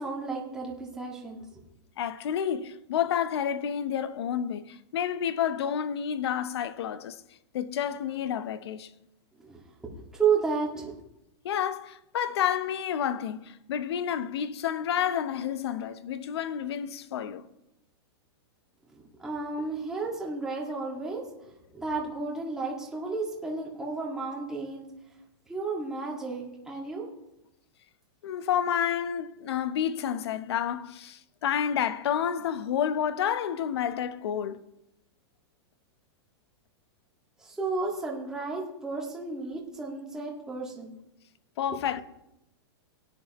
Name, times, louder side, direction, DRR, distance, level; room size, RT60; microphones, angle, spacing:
voice 1, 0.0-1.4 9.4-11.0 18.9-24.9 25.5-27.0 37.4-41.0, right 4 dB, 5° right, 1.8 m, -32 dB
voice 2, 2.0-7.2 7.5-8.9 11.4-17.5 28.2-34.6 41.6-42.0, left 9 dB, 70° left, 0.8 m, -30 dB
17.5 x 9.9 x 3.0 m
supercardioid pair, 165°, 14 cm